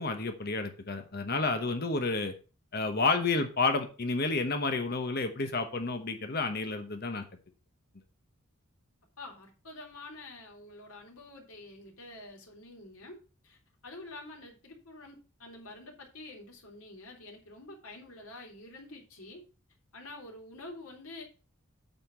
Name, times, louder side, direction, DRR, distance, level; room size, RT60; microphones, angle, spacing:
voice 1, 0.0-2.3 2.7-7.2, left 3 dB, 45° left, 7 dB, 1.0 m, -30 dB
voice 2, 9.2-13.2 13.4-13.6 13.8-19.4 19.9-21.2, left 2 dB, 80° left, 0 dB, 3.3 m, -47 dB
9.0 x 4.3 x 7.0 m, 0.35 s
head